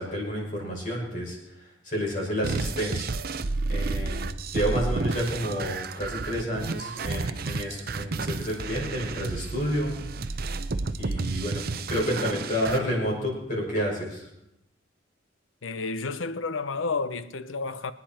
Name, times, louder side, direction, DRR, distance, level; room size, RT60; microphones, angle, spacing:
voice 1, 0.0-1.4 1.8-3.1 3.7-9.9 10.9-11.6 11.9-14.3, equal, 40° left, 5.8 m, -30 dB
sound 1, 2.4-12.8, right 3 dB, 50° right, 0.7 m, -31 dB
voice 2, 15.6-17.9, left 4 dB, 85° left, 0.8 m, -31 dB
24.5 x 9.8 x 4.4 m
head